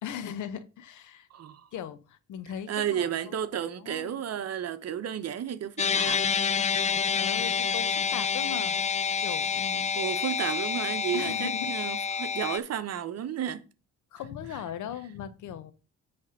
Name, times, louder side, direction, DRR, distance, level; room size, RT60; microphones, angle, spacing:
voice 1, 0.0-1.3 1.7-3.3 3.8-4.2 7.1-8.8 9.2-9.9 11.1-11.7 12.4-12.6 14.1-15.7, left 9 dB, 75° left, 0.9 m, -38 dB
voice 2, 1.3-1.7 2.7-6.2 10.0-13.6, right 9 dB, 55° right, 0.9 m, -32 dB
sound 1, 5.8-12.6, left 6 dB, 25° left, 0.3 m, -28 dB
9.5 x 3.5 x 5.5 m
cardioid pair, 90°, 30 cm